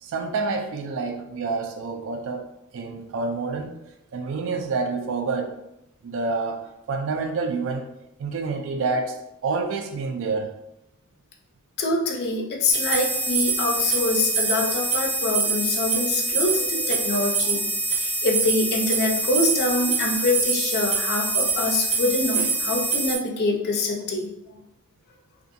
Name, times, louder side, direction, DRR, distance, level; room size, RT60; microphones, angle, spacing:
voice 1, 0.0-2.5 2.7-3.8 4.1-5.6 6.0-7.9 8.2-9.2 9.4-10.5 22.4-22.5, right 4 dB, 60° right, 4 dB, 0.3 m, -28 dB
voice 2, 11.8-17.7 18.0-24.3, left 2 dB, 45° left, 1 dB, 0.4 m, -25 dB
sound 1, 12.7-23.2, right 3 dB, 30° right, 0.6 m, -25 dB
2.6 x 2.4 x 2.5 m, 0.87 s
head